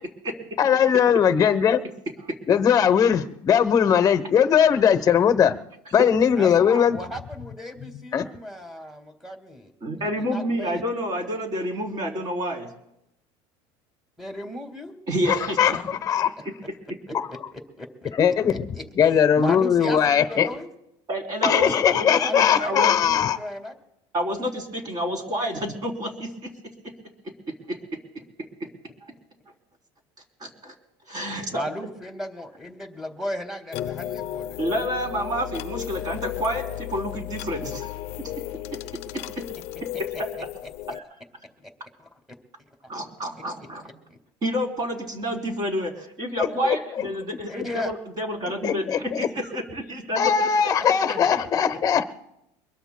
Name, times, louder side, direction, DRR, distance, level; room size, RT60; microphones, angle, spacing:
voice 1, 0.6-1.8 2.5-5.5 5.9-7.0 8.1-8.3 15.3-16.3 18.2-18.7 19.0-20.5 21.4-23.4 46.4-46.8 48.6-49.3 50.2-52.0, left 8 dB, 30° left, 11 dB, 0.9 m, -20 dB
voice 2, 6.4-9.7 10.2-10.8 14.2-15.0 17.1-17.2 17.5-18.1 18.5-18.8 19.4-20.7 22.2-23.8 31.5-34.7 41.6-41.7 42.0-42.1 42.8-42.9 43.8-44.2 47.0-47.1 47.5-47.9 50.8-51.4, left 1 dB, ahead, 2 dB, 2.0 m, -35 dB
voice 3, 9.8-12.7 15.1-15.6 21.1-23.0 24.1-26.3 27.7-27.8 30.4-30.7 31.1-31.6 34.6-37.9 38.2-38.3 42.9-43.8 44.4-50.5, equal, 35° right, 2 dB, 3.6 m, -29 dB
sound 1, 33.7-41.0, left 12 dB, 60° left, 0.6 m, -34 dB
24.0 x 21.5 x 2.2 m, 0.83 s
cardioid pair, 140°, 12 cm